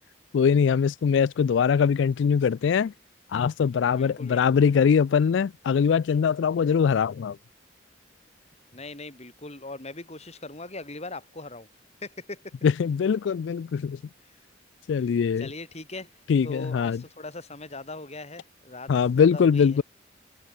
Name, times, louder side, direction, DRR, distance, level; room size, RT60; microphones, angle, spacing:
voice 1, 0.3-2.9 3.3-7.4 12.6-14.0 14.9-15.5 16.3-17.0 18.9-19.8, left 6 dB, 70° left, 0.3 m, -22 dB
voice 2, 3.9-4.6 8.7-11.7 12.0-12.5 15.0-16.1 16.4-19.8, left 2 dB, 35° left, 4.3 m, -40 dB
head